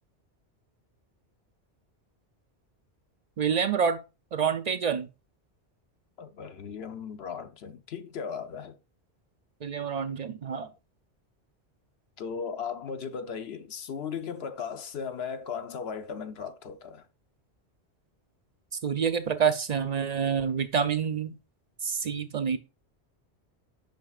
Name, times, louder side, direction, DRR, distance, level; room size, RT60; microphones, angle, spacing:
voice 1, 3.4-4.0 4.3-5.1 9.6-10.7 18.8-21.3 21.8-22.6, right 7 dB, 50° right, 0.5 m, -27 dB
voice 2, 6.2-8.8 12.2-17.1, left 6 dB, 70° left, 0.9 m, -37 dB
9.0 x 5.9 x 2.4 m
omnidirectional pair, 1.1 m